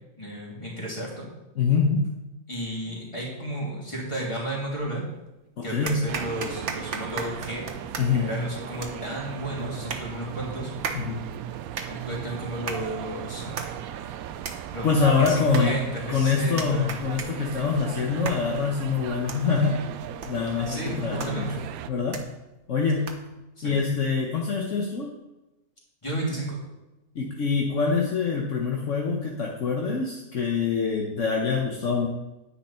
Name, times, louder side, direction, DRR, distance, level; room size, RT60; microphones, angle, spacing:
voice 1, 0.2-1.3 2.5-5.0 5.6-7.7 8.1-10.7 11.9-13.6 14.7-14.9 15.2-17.0 20.7-21.7 23.6-23.8 26.0-26.6, right 1 dB, 20° left, -4 dB, 3.2 m, -33 dB
voice 2, 1.5-2.1 5.6-6.1 8.0-8.3 10.9-11.3 14.8-15.8 16.1-19.8 20.3-21.5 21.9-22.2 22.7-23.2 23.6-25.1 27.1-32.1, left 5 dB, 60° left, 0 dB, 1.4 m, -25 dB
sound 1, 4.8-5.3 5.9-23.4, right 5 dB, 55° right, 1.4 m, -39 dB
sound 2, 6.1-21.9, right 10 dB, 80° right, 1.0 m, -37 dB
9.9 x 9.5 x 4.4 m, 1.0 s
omnidirectional pair, 1.5 m